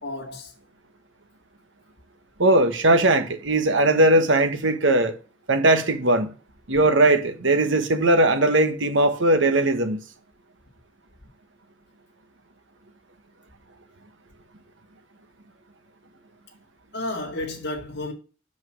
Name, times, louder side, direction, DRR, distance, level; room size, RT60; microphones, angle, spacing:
voice 1, 0.0-0.5 16.9-18.1, left 2 dB, 60° left, 1.9 m, -32 dB
voice 2, 2.4-5.2 5.5-6.3 6.7-10.0, right 1 dB, 75° right, 1.2 m, -19 dB
6.0 x 5.3 x 6.3 m
head